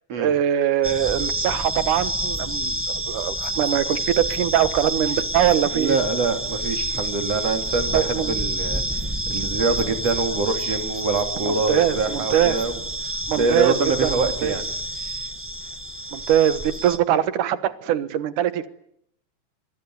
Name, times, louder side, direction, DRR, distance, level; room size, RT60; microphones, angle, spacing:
voice 1, 0.1-6.0 7.9-8.3 11.4-12.6 13.3-14.6 16.1-18.7, right 11 dB, 85° right, 13 dB, 2.8 m, -22 dB
sound 1, 0.8-17.0, right 1 dB, 10° right, 0.7 m, -28 dB
voice 2, 5.7-8.8 9.3-12.8 13.3-14.7 15.0-15.1, right 3 dB, 55° right, 6 dB, 4.0 m, -24 dB
26.0 x 21.5 x 9.5 m, 0.74 s
omnidirectional pair, 3.5 m